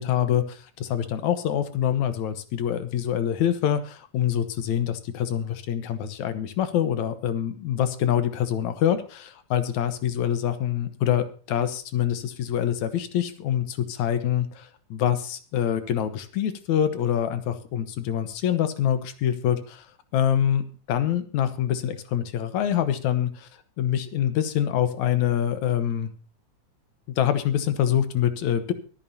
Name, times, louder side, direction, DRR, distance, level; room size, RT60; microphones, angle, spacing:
voice 1, 0.0-19.9 20.1-23.5 23.8-26.1 27.2-28.7, left 10 dB, 70° left, 10 dB, 2.4 m, -25 dB
24.0 x 9.0 x 2.8 m, 0.38 s
omnidirectional pair, 3.7 m